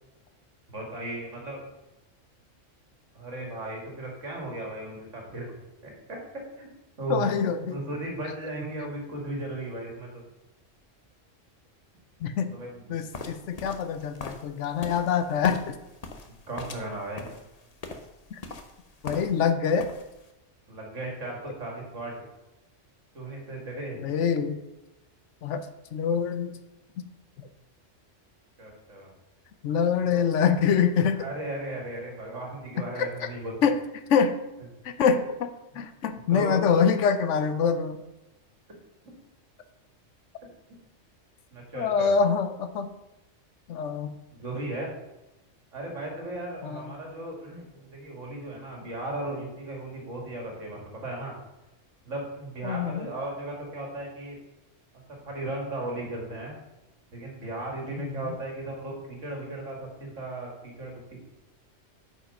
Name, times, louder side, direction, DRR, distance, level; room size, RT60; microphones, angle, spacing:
voice 1, 0.7-1.6 3.1-5.6 5.8-6.7 7.0-7.2 7.7-10.2 12.4-13.0 16.3-17.3 20.7-22.2 23.1-24.0 28.6-29.1 30.0-30.2 31.1-33.6 36.3-36.6 41.5-42.1 44.3-44.9 45.7-51.3 52.0-54.4 55.2-56.6 57.1-61.2, right 2 dB, 75° right, 0 dB, 2.5 m, -36 dB
voice 2, 7.1-7.8 12.2-12.5 12.9-15.7 18.3-18.4 19.0-19.9 24.0-24.6 25.4-25.6 25.9-26.5 29.6-31.3 33.0-33.1 33.6-33.7 34.1-34.4 34.8-38.0 41.7-42.9 43.7-44.1 46.6-46.9 52.6-53.1 58.0-58.1, left 6 dB, 75° left, 10 dB, 1.0 m, -25 dB
sound 1, 13.1-19.5 19.8-20.3, left 3 dB, 35° left, 0.8 m, -41 dB
8.7 x 5.0 x 5.3 m, 0.98 s
omnidirectional pair, 1.3 m